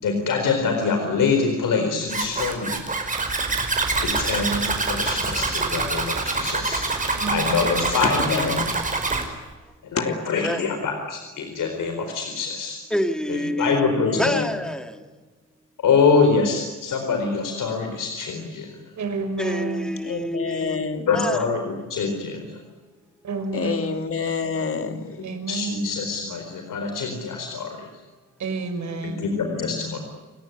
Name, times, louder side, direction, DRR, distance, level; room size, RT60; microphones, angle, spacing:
voice 1, 0.0-2.8 4.0-8.4 9.8-12.8 13.3-14.4 15.8-18.7 21.1-22.5 25.5-27.9 29.0-30.0, left 5 dB, 90° left, 4.3 m, -25 dB
Zipper (clothing), 2.1-9.2, right 3 dB, 25° right, 5.2 m, -25 dB
voice 2, 7.1-7.5 19.0-20.0 23.2-23.8 25.2-26.0 28.4-29.2, right 4 dB, 65° right, 5.7 m, -29 dB
voice 3, 7.9-8.8 10.0-10.1 13.7-14.5 20.0-21.2 23.5-25.2 29.3-29.9, left 5 dB, 45° left, 2.9 m, -28 dB
voice 4, 12.9-15.0 19.4-20.8 21.1-21.4, equal, ahead, 1.9 m, -27 dB
29.0 x 18.5 x 9.7 m
wide cardioid pair, 160°, 31 cm